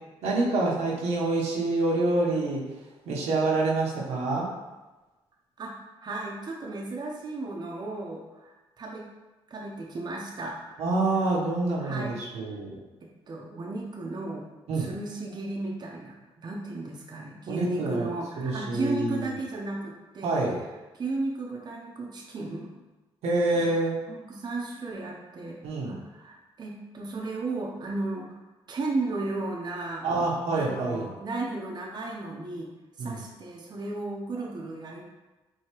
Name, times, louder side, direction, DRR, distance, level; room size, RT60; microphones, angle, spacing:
voice 1, 0.2-2.6 3.1-4.5 10.8-12.8 14.7-14.9 17.5-18.1 18.4-19.3 20.2-20.6 23.2-24.0 25.6-26.0 30.0-31.1 33.0-33.2, right 2 dB, 90° right, -5 dB, 1.0 m, -26 dB
voice 2, 6.0-9.1 9.5-10.6 11.8-12.2 13.0-14.5 14.7-20.4 21.0-22.7 23.5-23.6 24.1-25.6 25.8-28.4 28.7-30.1 30.5-32.7 33.0-35.1, right 2 dB, 40° right, -2 dB, 0.7 m, -34 dB
4.6 x 2.8 x 2.9 m, 1.1 s
cardioid pair, 85°, 11 cm